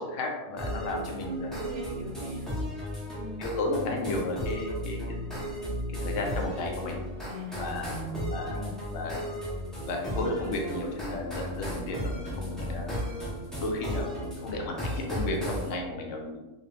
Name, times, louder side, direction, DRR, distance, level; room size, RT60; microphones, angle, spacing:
voice 1, 0.0-1.5 3.4-5.2 5.9-7.0 7.6-7.9 8.3-9.2 9.8-12.9 13.6-16.4, left 2 dB, 75° left, 1 dB, 0.9 m, -33 dB
sound 1, 0.6-15.7, equal, ahead, 0.3 m, -35 dB
voice 2, 1.1-2.5 3.1-3.5 7.2-8.8, right 1 dB, 80° right, -1 dB, 1.0 m, -40 dB
2.3 x 2.1 x 3.0 m, 1.1 s
omnidirectional pair, 1.3 m